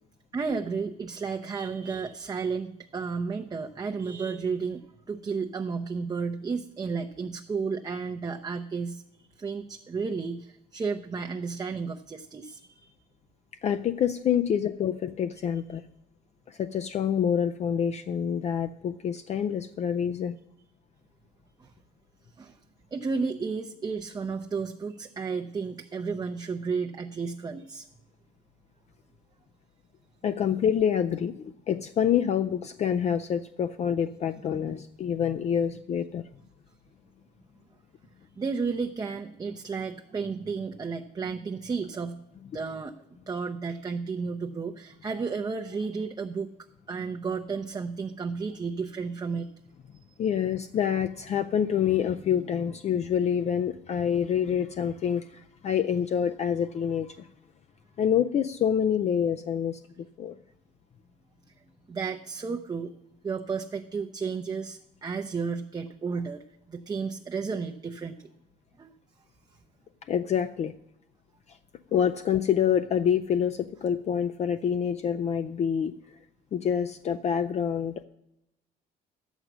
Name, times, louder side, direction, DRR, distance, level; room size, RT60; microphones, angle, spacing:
voice 1, 0.3-12.9 21.6-21.7 22.4-22.6 22.9-27.9 38.4-42.2 42.5-42.9 43.3-46.5 46.9-49.5 61.9-62.9 63.2-66.4 66.7-68.3 68.8-68.9, right 5 dB, 25° right, 5 dB, 0.6 m, -32 dB
voice 2, 13.6-15.8 16.5-20.4 30.2-36.3 50.2-57.3 58.0-59.8 60.2-60.4 70.1-70.7 71.9-75.9 76.5-78.0, left 8 dB, 40° left, 9 dB, 0.4 m, -27 dB
11.0 x 8.1 x 6.0 m, 0.88 s
cardioid pair, 110°, 17 cm